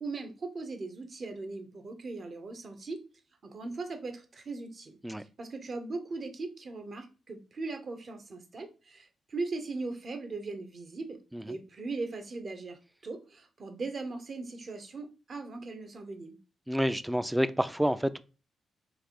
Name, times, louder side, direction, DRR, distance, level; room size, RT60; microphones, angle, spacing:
voice 1, 0.0-3.0 3.4-11.2 11.4-16.4, right 3 dB, 50° right, 0.8 m, -39 dB
voice 2, 16.7-18.2, equal, 5° right, 0.3 m, -29 dB
3.3 x 2.5 x 3.6 m
cardioid pair, 65°, 0 cm